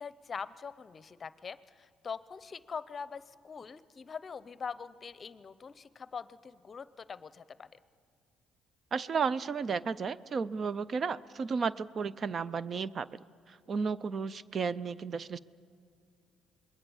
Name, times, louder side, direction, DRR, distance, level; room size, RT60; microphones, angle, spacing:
voice 1, 0.0-7.7, left 6 dB, 40° left, 16 dB, 0.7 m, -43 dB
voice 2, 8.9-13.1 13.5-15.4, right 5 dB, 45° right, 19 dB, 0.5 m, -33 dB
26.5 x 21.0 x 7.1 m, 2.4 s
cardioid pair, 85°, 0 cm